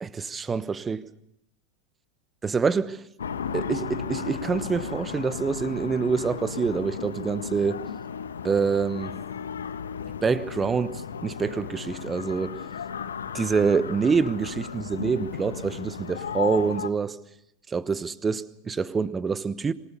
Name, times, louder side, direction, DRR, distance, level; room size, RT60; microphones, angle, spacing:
voice 1, 0.0-1.0 2.4-3.0 3.5-7.8 8.4-9.2 10.2-12.6 13.3-17.2 17.7-19.7, right 5 dB, 20° right, 1.1 m, -26 dB
sound 1, 3.2-16.9, left 7 dB, 70° left, 1.4 m, -35 dB
26.5 x 19.0 x 6.9 m
figure-of-eight pair, 85°, 0 cm